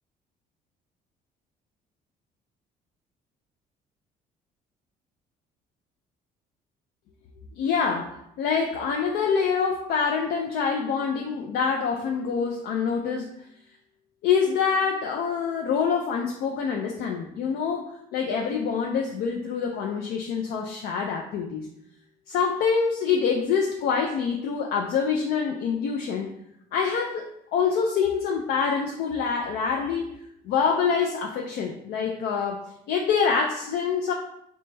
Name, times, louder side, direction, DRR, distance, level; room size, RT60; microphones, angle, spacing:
voice 1, 7.6-13.3 14.2-21.7 22.3-26.4 26.7-30.1 30.4-32.6 32.9-34.1, left 6 dB, 75° left, 2 dB, 0.4 m, -26 dB
3.9 x 2.2 x 3.2 m, 0.74 s
cardioid pair, 110°, 17 cm